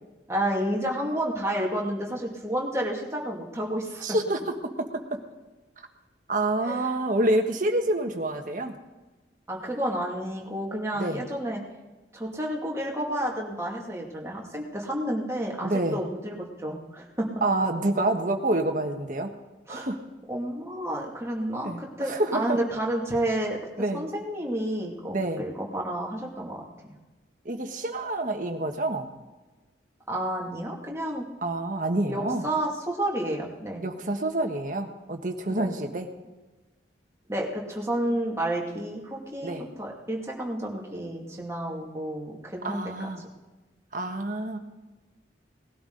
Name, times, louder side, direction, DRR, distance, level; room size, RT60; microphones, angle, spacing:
voice 1, 0.3-4.0 6.6-6.8 9.5-11.6 12.1-17.3 19.7-19.9 20.3-23.6 23.9-26.9 30.1-31.3 32.1-33.8 35.5-35.7 37.3-43.1, right 1 dB, 15° right, -2 dB, 2.3 m, -30 dB
voice 2, 4.0-4.9 6.3-8.7 11.0-11.2 15.6-16.0 17.4-19.3 19.7-20.0 21.6-22.6 23.8-24.0 25.1-25.4 27.4-29.1 31.4-32.4 33.8-36.1 39.4-39.7 42.6-43.2 43.9-44.6, right 2 dB, 45° right, 4 dB, 1.5 m, -27 dB
19.5 x 12.5 x 4.0 m, 1.2 s
head